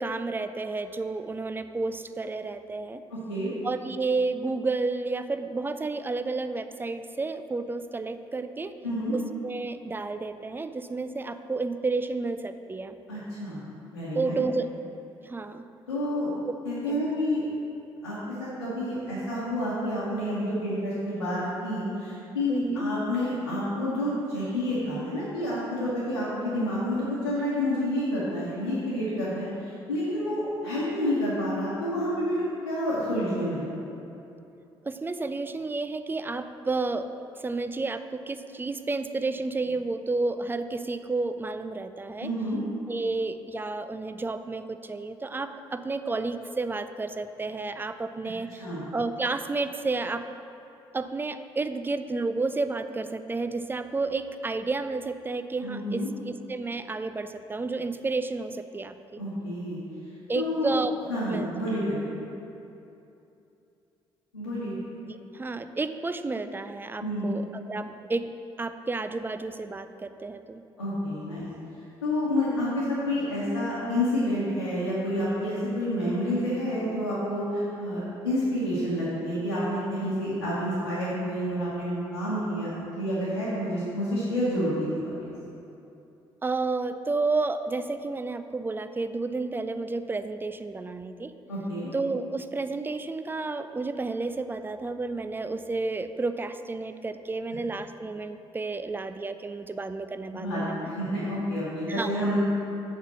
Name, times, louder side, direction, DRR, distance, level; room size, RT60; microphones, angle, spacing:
voice 1, 0.0-3.0 3.6-8.7 9.1-13.0 14.1-14.7 15.2-15.6 16.9-17.1 22.5-22.8 34.8-37.1 37.4-42.3 42.9-48.7 48.9-50.3 50.9-59.2 60.3-60.9 61.3-61.5 65.1-70.6 86.4-91.3 91.9-100.9 101.9-102.4, right 3 dB, 15° right, 10 dB, 0.4 m, -31 dB
voice 2, 3.1-3.5 8.8-9.1 13.1-13.6 13.9-14.4 15.9-16.3 16.6-17.4 18.0-33.6 42.2-42.6 48.6-48.8 55.6-56.1 59.2-59.8 60.3-60.7 61.1-62.0 64.3-64.7 67.0-67.3 70.8-71.5 72.0-85.3 91.5-91.9 100.3-102.4, left 1 dB, 85° left, -11 dB, 1.3 m, -29 dB
7.2 x 5.6 x 6.0 m, 2.8 s
figure-of-eight pair, 45°, 13 cm